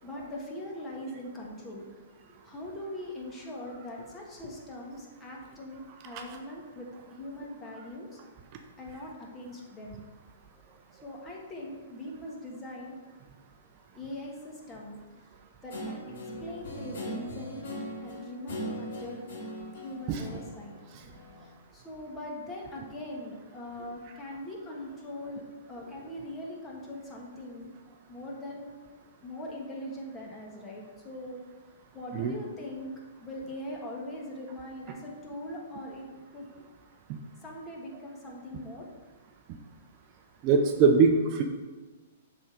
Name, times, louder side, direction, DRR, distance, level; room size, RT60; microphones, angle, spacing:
voice 1, 0.0-1.9 2.4-8.2 8.8-10.0 11.0-13.0 13.9-15.3 15.6-16.0 16.4-17.7 18.0-19.2 19.8-20.7 21.4-27.7 28.1-29.0 29.2-31.4 31.9-32.9 33.2-36.5 37.4-38.8, left 1 dB, 20° left, -2 dB, 1.5 m, -41 dB
Guitar, 15.7-21.5, equal, 65° left, 2.0 m, -40 dB
voice 2, 40.4-41.4, right 5 dB, 40° right, 5 dB, 0.6 m, -22 dB
7.1 x 3.7 x 4.7 m, 1.3 s
hypercardioid pair, 125°, 0 cm